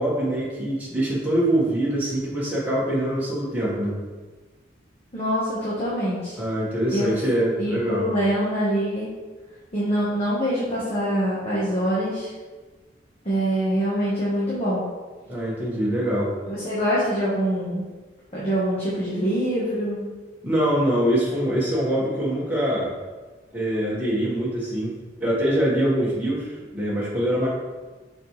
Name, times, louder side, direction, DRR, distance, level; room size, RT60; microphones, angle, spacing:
voice 1, 0.0-4.0 6.4-8.1 15.3-16.3 20.4-22.9 23.5-27.5, right 1 dB, 10° right, -8 dB, 1.5 m, -24 dB
voice 2, 5.1-6.4 6.9-7.1 7.6-9.1 9.7-12.3 13.2-14.8 16.5-17.8 18.3-20.0, equal, 30° left, -9 dB, 1.3 m, -24 dB
6.5 x 4.5 x 3.3 m, 1.3 s
head